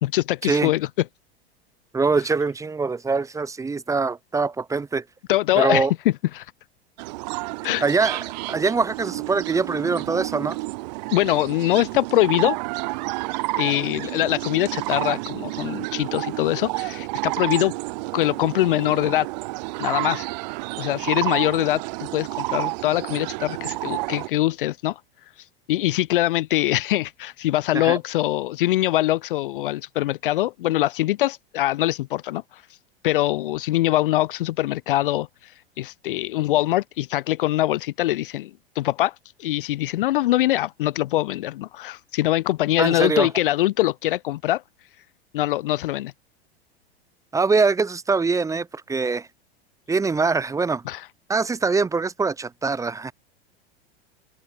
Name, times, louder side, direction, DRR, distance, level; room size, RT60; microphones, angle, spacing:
voice 1, 0.0-0.9 5.3-5.9 6.3-6.5 7.6-7.8 11.1-12.6 13.6-17.7 18.1-19.3 19.8-20.3 20.8-25.0 25.7-32.6 33.0-35.3 35.8-38.5 38.8-39.1 39.4-44.6 45.3-46.1 50.9-51.0, left 15 dB, 55° left, 0.5 m, -23 dB
voice 2, 1.9-5.0 5.6-5.9 7.8-10.6 27.7-28.0 42.8-43.3 47.3-49.3 49.9-50.8 51.3-53.1, right 4 dB, 10° right, 0.8 m, -23 dB
sound 1, 7.0-24.3, right 24 dB, 45° right, 0.5 m, -30 dB
figure-of-eight pair, 85°, 32 cm